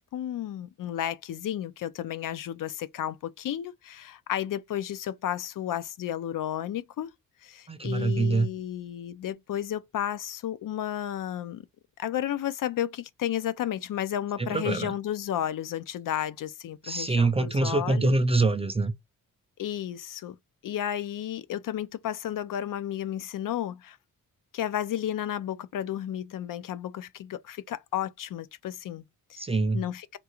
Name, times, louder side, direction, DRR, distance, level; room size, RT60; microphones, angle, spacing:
voice 1, 0.0-7.1 7.4-11.7 12.0-18.1 19.6-20.4 20.6-24.0 24.5-29.4 29.7-30.2, left 11 dB, 65° left, 0.5 m, -32 dB
voice 2, 7.7-8.5 14.4-14.9 16.8-18.9 29.4-29.8, right 3 dB, 20° right, 0.3 m, -25 dB
3.7 x 2.3 x 2.9 m
wide cardioid pair, 110°, 35 cm